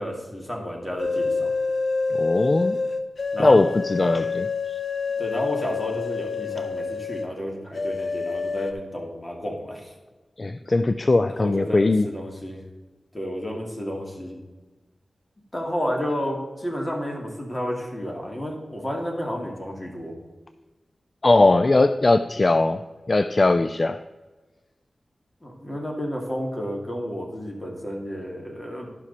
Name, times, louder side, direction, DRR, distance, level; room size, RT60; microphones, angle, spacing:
voice 1, 0.0-1.5 3.3-3.6 5.2-9.9 11.4-12.6 13.1-14.4 15.5-20.1 25.4-28.9, equal, 20° left, -1 dB, 2.6 m, -31 dB
sound 1, 1.0-7.3 7.7-8.7, left 4 dB, 65° left, 0.9 m, -27 dB
voice 2, 2.2-2.8 3.4-4.8 10.4-12.1 21.2-22.8 23.1-24.0, left 2 dB, 45° left, 11 dB, 0.3 m, -20 dB
11.5 x 6.0 x 4.2 m, 1.2 s
cardioid pair, 55°, 0 cm